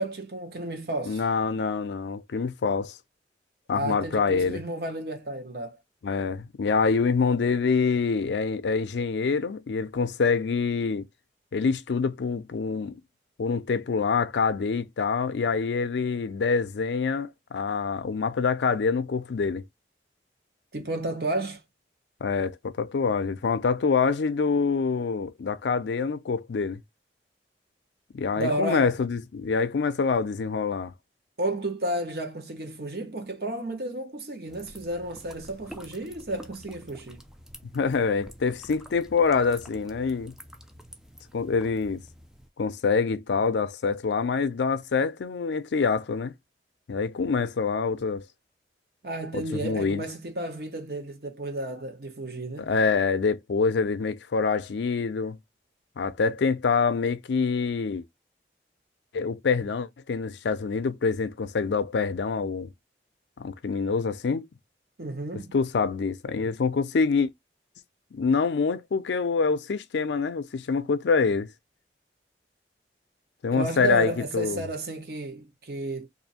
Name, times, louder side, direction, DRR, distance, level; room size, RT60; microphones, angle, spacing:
voice 1, 0.0-1.2 3.7-5.8 20.7-21.6 28.4-28.9 31.4-37.2 49.0-52.7 65.0-65.6 73.5-76.1, right 1 dB, 60° right, 1.0 m, -32 dB
voice 2, 1.1-3.0 3.7-4.6 6.0-11.0 11.5-13.0 13.4-19.6 22.2-26.8 28.1-30.9 37.7-40.3 41.3-42.0 42.6-46.3 46.9-48.2 49.3-50.0 52.6-55.4 56.0-58.0 59.1-62.7 63.4-64.5 65.5-67.3 68.1-71.5 73.4-74.6, left 5 dB, 80° left, 0.4 m, -26 dB
sound 1, 34.5-42.5, equal, 5° right, 0.4 m, -48 dB
2.7 x 2.6 x 4.1 m
head